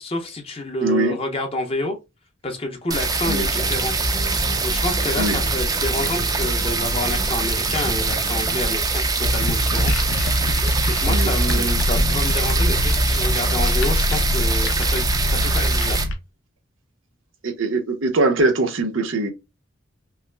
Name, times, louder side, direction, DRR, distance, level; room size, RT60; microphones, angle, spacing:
voice 1, 0.0-2.0 2.4-3.9 4.6-9.9 11.0-16.0, left 2 dB, 30° left, 0.8 m, -28 dB
voice 2, 0.8-1.2 3.3-3.5 5.2-5.4 11.1-11.7 17.4-19.3, right 2 dB, 75° right, 0.8 m, -22 dB
sound 1, 2.9-16.0, right 3 dB, 20° right, 0.5 m, -23 dB
sound 2, 3.5-8.9, right 1 dB, 45° left, 1.3 m, -36 dB
sound 3, 9.2-16.2, left 1 dB, 90° left, 0.6 m, -23 dB
5.5 x 2.0 x 2.2 m
head